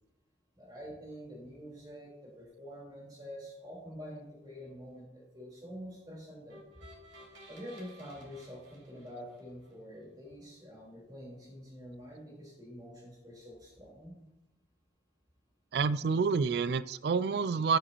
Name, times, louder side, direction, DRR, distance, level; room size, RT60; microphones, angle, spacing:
voice 1, 0.5-6.6 7.5-14.1, equal, 20° right, -4 dB, 4.2 m, -47 dB
sound 1, 6.5-9.7, equal, 80° right, 3.0 m, -55 dB
voice 2, 15.7-17.8, right 5 dB, 60° right, 16 dB, 0.3 m, -28 dB
12.0 x 9.0 x 3.0 m, 0.89 s
head